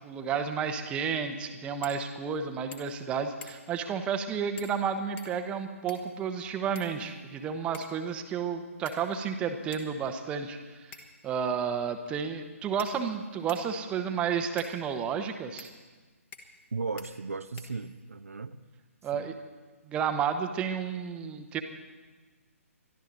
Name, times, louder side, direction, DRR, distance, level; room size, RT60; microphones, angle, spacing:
voice 1, 0.0-10.9 11.2-15.7 19.0-19.3 19.9-21.6, right 7 dB, 15° right, 7 dB, 0.9 m, -31 dB
sound 1, 1.8-2.0 2.3-2.4 2.7-3.0 3.4-3.8 4.6-4.8 5.2-6.2 6.7-7.3 7.7-8.0 8.9-9.3 9.7-9.9 10.9-11.3 12.1-12.2 12.8-13.7 14.6-14.8 15.6-15.7 16.3-16.7 17.0-17.1 17.6-18.1, left 5 dB, 15° left, 1.3 m, -49 dB
voice 2, 16.7-18.6 19.1-19.3, right 4 dB, 70° right, 10 dB, 0.7 m, -36 dB
22.0 x 12.5 x 4.0 m, 1.3 s
figure-of-eight pair, 135°, 8 cm